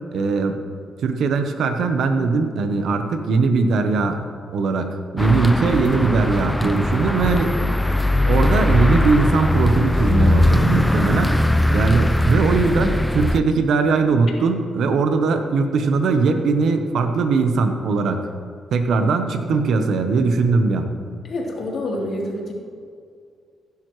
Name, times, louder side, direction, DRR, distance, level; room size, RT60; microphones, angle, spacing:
voice 1, 0.1-0.6 1.0-4.2 4.5-7.6 8.3-11.3 11.7-18.3 18.7-20.9, right 4 dB, 75° right, 7 dB, 0.9 m, -20 dB
sound 1, 5.2-13.4, left 1 dB, 5° left, 0.5 m, -19 dB
voice 2, 21.2-22.5, left 1 dB, 60° left, -3 dB, 3.3 m, -27 dB
15.5 x 10.5 x 3.2 m, 2.2 s
cardioid pair, 80°, 0 cm